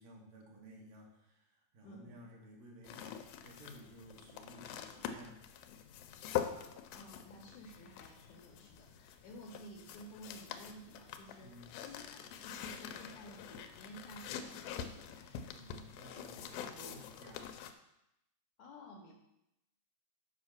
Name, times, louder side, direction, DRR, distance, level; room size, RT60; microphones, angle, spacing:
voice 1, 0.0-5.4 11.4-11.8 15.5-17.5, right 1 dB, 70° right, -1 dB, 3.1 m, -55 dB
voice 2, 1.8-2.2 6.9-15.5 18.6-19.2, equal, 70° left, 1 dB, 1.9 m, -54 dB
sound 1, 2.8-17.7, left 9 dB, 90° left, 2.5 m, -45 dB
7.5 x 5.6 x 5.9 m, 0.85 s
omnidirectional pair, 4.1 m